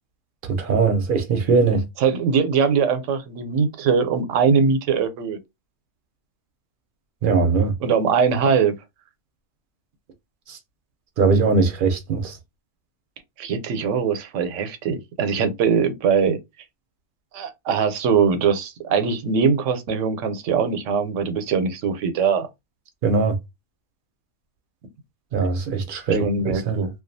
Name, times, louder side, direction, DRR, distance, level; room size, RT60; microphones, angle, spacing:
voice 1, 0.4-1.8 7.2-7.7 10.5-10.6 11.2-12.4 23.0-23.4 25.3-26.8, right 4 dB, 55° right, 0.6 m, -20 dB
voice 2, 2.0-5.4 7.8-8.7 13.4-16.4 17.3-22.5 26.2-26.9, right 6 dB, 90° right, 1.0 m, -21 dB
2.3 x 2.3 x 2.5 m
omnidirectional pair, 1.2 m